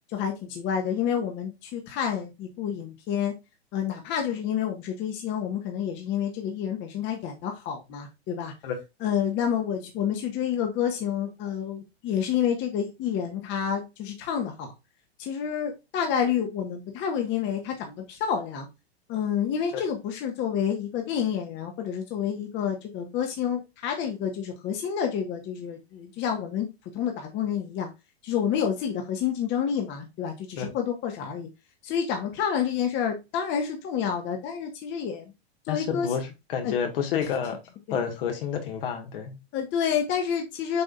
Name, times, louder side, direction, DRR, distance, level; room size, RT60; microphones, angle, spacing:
voice 1, 0.1-3.3 3.7-8.5 9.0-14.7 15.2-18.7 19.1-26.7 26.9-27.9 28.2-31.5 31.8-35.3 35.6-36.1 36.6-36.7 37.2-37.3 39.5-40.8, left 8 dB, 35° left, 1.5 m, -29 dB
voice 2, 35.7-37.6 37.9-39.4, left 7 dB, 55° left, 1.9 m, -29 dB
7.6 x 5.2 x 2.5 m
figure-of-eight pair, 100°, 33 cm